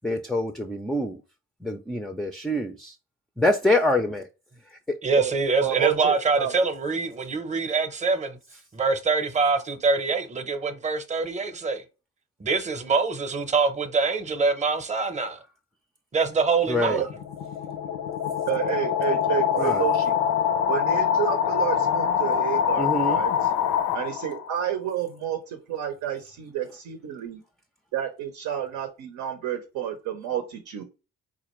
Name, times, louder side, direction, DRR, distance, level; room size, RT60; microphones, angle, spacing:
voice 1, 0.0-1.2 1.6-3.0 3.4-4.2 4.7-4.8 16.7-17.0 19.6-19.9 22.8-23.2, left 1 dB, ahead, 0.3 m, -25 dB
voice 2, 5.0-8.4 8.7-11.8 12.4-15.4 16.1-17.1, right 4 dB, 25° right, 0.7 m, -24 dB
voice 3, 5.6-6.5 16.9-17.1 18.5-20.2 20.7-23.5 23.9-27.4 27.9-30.8, right 10 dB, 90° right, 0.7 m, -30 dB
sound 1, 16.9-24.5, left 8 dB, 90° left, 0.5 m, -24 dB
4.2 x 2.4 x 3.0 m
cardioid pair, 90°, 30 cm